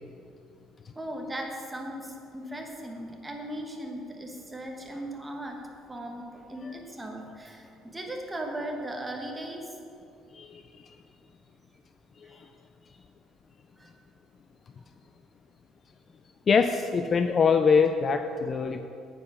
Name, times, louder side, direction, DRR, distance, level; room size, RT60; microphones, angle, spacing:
voice 1, 0.9-5.6 5.9-9.8 12.2-12.4 13.8-13.9, right 1 dB, 10° right, 1 dB, 1.1 m, -38 dB
voice 2, 16.5-18.8, left 5 dB, 25° left, 8 dB, 0.3 m, -23 dB
9.6 x 8.3 x 5.6 m, 2.6 s
cardioid pair, 165°, 0 cm